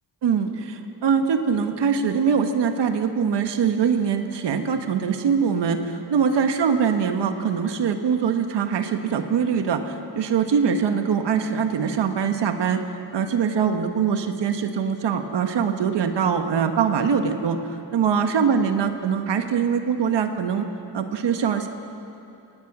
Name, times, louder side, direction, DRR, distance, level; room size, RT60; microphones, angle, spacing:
voice 1, 0.2-12.8 13.1-17.6 17.9-20.7 20.9-21.7, right 6 dB, 85° right, 7 dB, 1.5 m, -23 dB
24.0 x 18.0 x 6.2 m, 2.7 s
cardioid pair, 85°, 41 cm